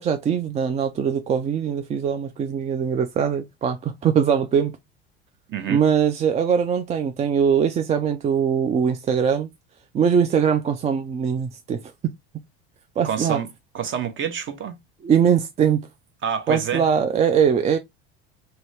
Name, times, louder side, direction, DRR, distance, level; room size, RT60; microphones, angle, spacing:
voice 1, 0.0-4.8 5.7-9.5 9.9-12.1 13.0-13.4 15.0-15.8 16.5-17.8, right 7 dB, 20° right, 0.3 m, -21 dB
voice 2, 5.5-5.9 13.0-13.5 13.7-14.8 16.2-16.9, right 8 dB, 35° right, 0.9 m, -27 dB
2.9 x 2.8 x 3.0 m
hypercardioid pair, 85°, 32 cm